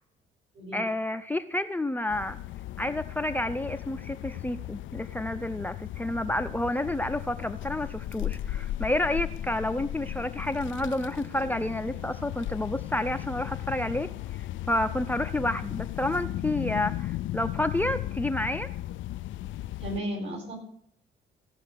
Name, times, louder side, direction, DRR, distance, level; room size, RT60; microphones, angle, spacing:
voice 1, 0.7-2.4 2.8-14.1 14.7-18.7, left 1 dB, 10° left, 8 dB, 0.6 m, -30 dB
sound 1, 2.1-20.0, left 14 dB, 75° left, 0.4 m, -36 dB
voice 2, 19.8-20.5, equal, 65° right, 1 dB, 7.5 m, -34 dB
16.0 x 5.7 x 8.2 m, 0.66 s
cardioid pair, 90°, 20 cm